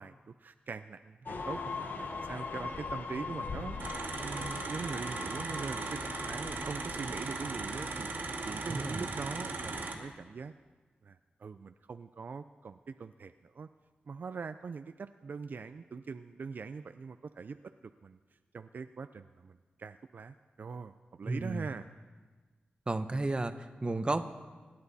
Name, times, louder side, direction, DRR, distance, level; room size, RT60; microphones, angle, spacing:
voice 1, 0.0-3.9 4.2-8.1 8.5-10.5 11.0-13.7 14.1-17.7 18.0-18.2 18.5-21.9, right 5 dB, 65° right, 10 dB, 0.4 m, -42 dB
sound 1, 1.3-9.9, left 4 dB, 65° left, 1.2 m, -41 dB
sound 2, 3.8-9.9, right 3 dB, 80° right, 2.1 m, -38 dB
voice 2, 8.7-9.0 21.2-21.7 22.9-24.2, right 2 dB, 30° right, 9 dB, 0.9 m, -33 dB
25.0 x 10.5 x 4.2 m, 1.4 s
wide cardioid pair, 85°, 3 cm